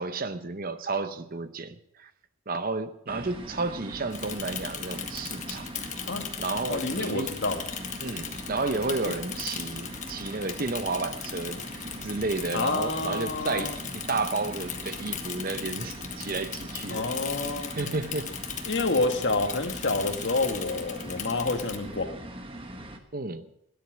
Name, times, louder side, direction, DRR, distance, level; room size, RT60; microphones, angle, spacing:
voice 1, 0.0-2.1 2.5-5.7 6.4-7.3 8.0-11.6 12.0-17.1 17.8-18.3 23.1-23.5, right 3 dB, 45° right, 11 dB, 0.8 m, -32 dB
sound 1, 3.1-23.0, right 1 dB, 25° right, 1.3 m, -41 dB
Bicycle / Mechanisms, 4.1-21.8, left 8 dB, 35° left, 1.3 m, -38 dB
voice 2, 6.7-7.6 9.1-9.2 12.5-13.8 16.9-17.7 18.7-22.1, left 3 dB, 55° left, 6 dB, 1.5 m, -28 dB
17.0 x 10.5 x 6.2 m, 0.77 s
head